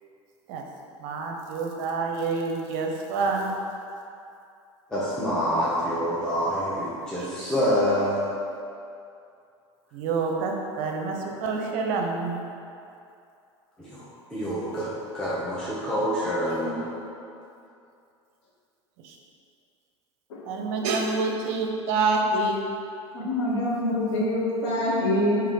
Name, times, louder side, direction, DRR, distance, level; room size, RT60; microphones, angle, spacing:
voice 1, 1.0-3.5 7.2-7.3 9.9-12.4 19.0-19.2 20.4-22.6, right 3 dB, 55° right, 2 dB, 0.5 m, -27 dB
voice 2, 4.9-8.2 11.2-11.3 13.8-14.9 15.1-17.0, equal, 5° left, -10 dB, 0.8 m, -27 dB
voice 3, 23.1-25.4, left 1 dB, 65° left, -5 dB, 1.0 m, -25 dB
3.1 x 2.8 x 3.9 m, 2.5 s
figure-of-eight pair, 75°, 15 cm